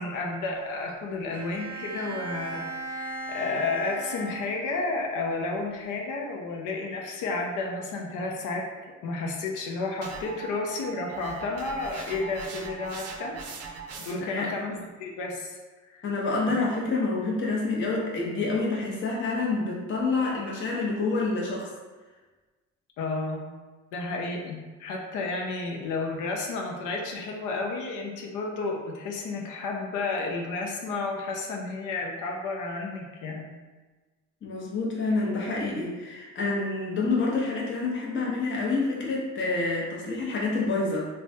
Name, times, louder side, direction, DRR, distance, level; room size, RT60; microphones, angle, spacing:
voice 1, 0.0-13.4 14.0-15.6 15.9-16.0 23.0-23.5 23.9-33.5, left 3 dB, 85° left, 0 dB, 0.5 m, -32 dB
Bowed string instrument, 1.3-5.0, right 2 dB, 5° left, 0.7 m, -37 dB
sound 1, 10.0-14.4, right 5 dB, 55° right, 0.5 m, -40 dB
voice 2, 14.2-14.5 16.0-21.7 34.4-41.1, left 3 dB, 40° left, -4 dB, 0.7 m, -28 dB
3.1 x 2.1 x 2.6 m, 1.3 s
cardioid pair, 90°, 30 cm